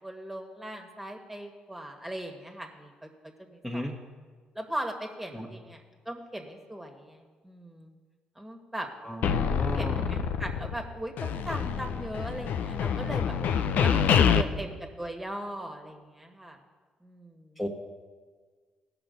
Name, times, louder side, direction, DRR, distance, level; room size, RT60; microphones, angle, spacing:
voice 1, 0.0-3.1 3.4-3.8 4.5-7.9 8.3-8.9 9.7-13.3 13.8-16.6 17.0-17.6, right 1 dB, 10° right, 3 dB, 1.8 m, -39 dB
voice 2, 9.0-10.1 17.6-17.7, equal, 5° left, -3 dB, 1.5 m, -34 dB
sound 1, 9.2-10.9 11.2-14.4, left 7 dB, 70° left, 0.5 m, -26 dB
16.0 x 6.0 x 5.3 m, 1.5 s
supercardioid pair, 65°, 3 cm